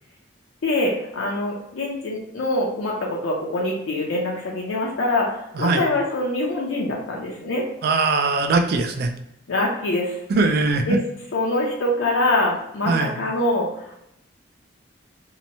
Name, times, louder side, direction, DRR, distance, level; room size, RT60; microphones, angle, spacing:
voice 1, 0.6-5.3 5.6-7.7 9.5-10.1 10.9-11.0 11.3-13.7, left 2 dB, 80° left, -1 dB, 0.5 m, -24 dB
voice 2, 7.8-9.1 10.3-11.0 12.9-13.1, right 3 dB, 50° right, 6 dB, 0.3 m, -20 dB
2.8 x 2.1 x 2.7 m, 0.80 s
head